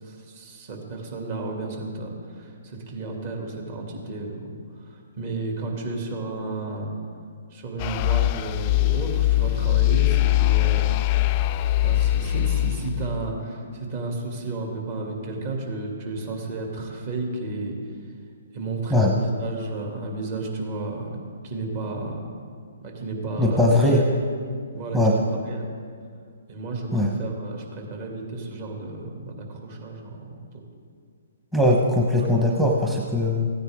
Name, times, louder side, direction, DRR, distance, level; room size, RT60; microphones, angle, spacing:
voice 1, 0.0-4.5 4.7-6.9 7.5-10.9 11.8-17.8 18.5-21.1 21.4-22.2 22.8-24.0 24.7-25.7 26.5-30.6 32.2-32.3, right 3 dB, 45° right, 0 dB, 2.4 m, -32 dB
sound 1, 7.8-13.3, left 16 dB, 35° left, 0.3 m, -22 dB
voice 2, 23.4-24.0 24.9-25.1 26.9-27.1 31.5-33.5, left 1 dB, 5° right, -1 dB, 0.9 m, -20 dB
15.0 x 9.3 x 3.6 m, 2.2 s
hypercardioid pair, 140°, 0 cm